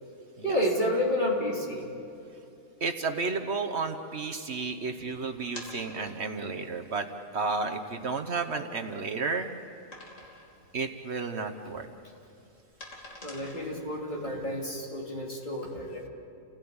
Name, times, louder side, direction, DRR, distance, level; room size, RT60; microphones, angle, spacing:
voice 1, 0.4-1.9 4.8-4.9 13.2-16.1, left 1 dB, 35° left, -3 dB, 3.6 m, -30 dB
voice 2, 2.8-7.1 7.3-9.6 10.7-11.9, right 4 dB, 55° right, 5 dB, 1.2 m, -32 dB
sound 1, 5.5-6.5 7.2-7.3 7.7-7.8 8.3-9.3 9.9-10.6 10.9-11.2 11.5-14.1, left 1 dB, 70° left, 3.5 m, -47 dB
29.5 x 17.0 x 8.7 m, 2.7 s
omnidirectional pair, 1.4 m